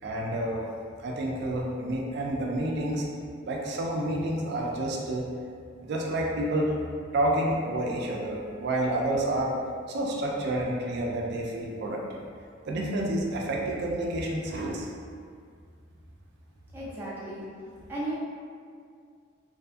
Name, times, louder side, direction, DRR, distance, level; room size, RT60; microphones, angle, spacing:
voice 1, 0.0-0.6 1.0-3.1 3.4-5.3 5.8-6.8 7.1-9.6 9.9-12.2 12.7-14.9, right 1 dB, 55° right, -1 dB, 0.4 m, -29 dB
voice 2, 16.7-17.4 17.9-18.1, right 1 dB, 10° right, -10 dB, 0.6 m, -34 dB
2.6 x 2.3 x 2.5 m, 2.2 s
head